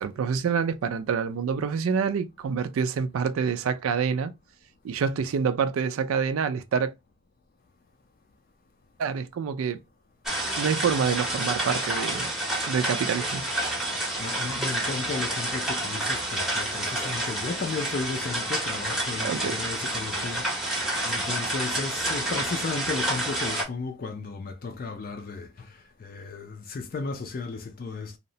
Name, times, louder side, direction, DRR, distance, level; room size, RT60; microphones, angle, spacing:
voice 1, 0.0-4.3 4.8-6.9 9.0-9.8 10.6-12.3 12.7-13.4 19.2-19.6, right 6 dB, 90° right, 0.3 m, -27 dB
sound 1, 10.3-23.6, right 1 dB, ahead, 0.7 m, -29 dB
voice 2, 14.2-28.2, left 4 dB, 45° left, 0.3 m, -34 dB
2.7 x 2.1 x 2.6 m
head